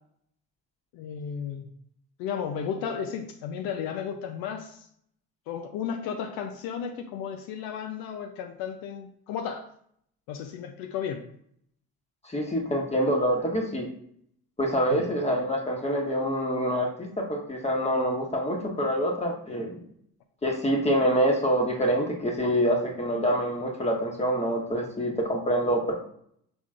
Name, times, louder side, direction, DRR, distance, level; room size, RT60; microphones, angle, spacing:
voice 1, 0.9-1.6 2.2-4.9 5.5-9.7 10.3-11.2 14.9-15.1, left 7 dB, 70° left, 5 dB, 0.6 m, -34 dB
voice 2, 12.2-13.9 14.6-19.8 20.4-25.9, equal, 15° left, 0 dB, 1.3 m, -26 dB
6.0 x 3.6 x 2.4 m, 0.66 s
supercardioid pair, 75°, 37 cm